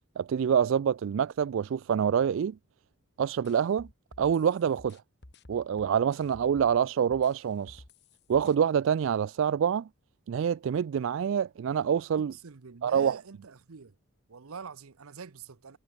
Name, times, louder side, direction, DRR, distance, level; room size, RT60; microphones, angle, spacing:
voice 1, 0.2-2.6 3.2-3.9 4.2-5.0 5.5-7.8 8.3-9.9 10.3-12.3 12.8-13.2, right 8 dB, 65° right, 0.3 m, -26 dB
sound 1, 3.4-6.8 7.1-8.5, left 1 dB, 50° left, 2.1 m, -52 dB
voice 2, 12.2-13.9 14.3-15.8, right 5 dB, 85° right, 0.8 m, -45 dB
head